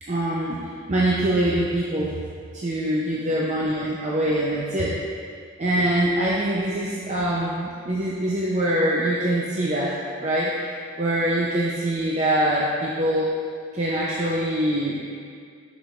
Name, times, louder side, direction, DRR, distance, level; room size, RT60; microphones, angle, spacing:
voice 1, 0.0-2.2 2.5-5.0 5.6-13.3 13.7-15.0, right 1 dB, 35° right, -6 dB, 0.6 m, -24 dB
8.2 x 6.1 x 2.5 m, 2.2 s
head